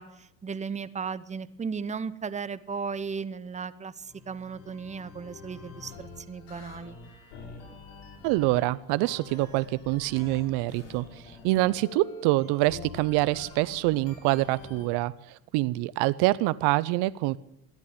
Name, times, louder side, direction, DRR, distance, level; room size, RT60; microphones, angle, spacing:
voice 1, 0.0-7.0, right 5 dB, 15° right, 15 dB, 0.8 m, -36 dB
sound 1, 4.1-14.8, left 3 dB, 60° left, 7.1 m, -46 dB
voice 2, 8.2-17.4, right 18 dB, 55° right, 18 dB, 0.7 m, -26 dB
14.5 x 10.5 x 9.2 m, 0.77 s
hypercardioid pair, 80°, 49 cm